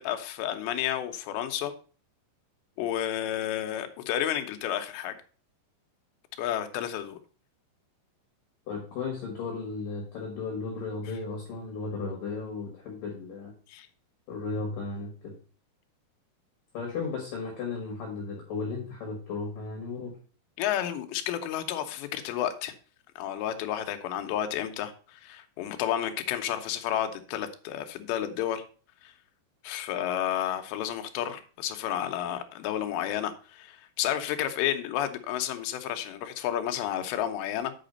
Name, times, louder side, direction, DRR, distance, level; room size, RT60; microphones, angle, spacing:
voice 1, 0.0-1.7 2.8-5.2 6.4-7.2 13.7-13.9 20.6-22.7 23.2-28.6 29.0-29.1 29.6-37.7, left 11 dB, 85° left, 7 dB, 3.1 m, -31 dB
voice 2, 8.7-13.5 14.3-15.3 16.7-20.1, left 4 dB, 60° left, -1 dB, 3.1 m, -35 dB
8.2 x 5.0 x 5.2 m, 0.38 s
omnidirectional pair, 4.9 m